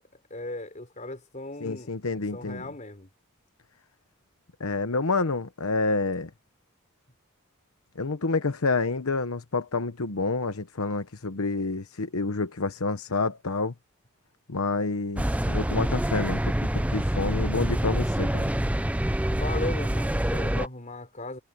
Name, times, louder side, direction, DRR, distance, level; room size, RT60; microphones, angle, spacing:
voice 1, 0.3-1.9 2.3-3.1 19.3-21.4, left 2 dB, 35° left, 4.1 m, -37 dB
voice 2, 1.6-2.6 4.6-6.3 8.0-13.7 14.5-18.4, left 3 dB, 80° left, 1.0 m, -28 dB
sound 1, 15.2-20.7, right 1 dB, 5° right, 0.6 m, -26 dB
head